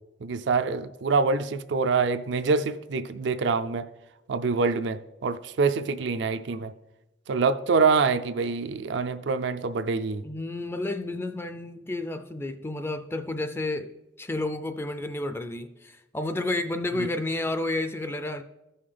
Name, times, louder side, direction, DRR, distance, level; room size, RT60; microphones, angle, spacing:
voice 1, 0.2-3.8 4.3-6.7 7.3-10.2 17.0-17.1, right 4 dB, 70° right, 9 dB, 0.4 m, -25 dB
voice 2, 10.2-18.4, left 2 dB, 15° left, 8 dB, 0.4 m, -31 dB
14.5 x 5.5 x 3.4 m, 0.97 s
head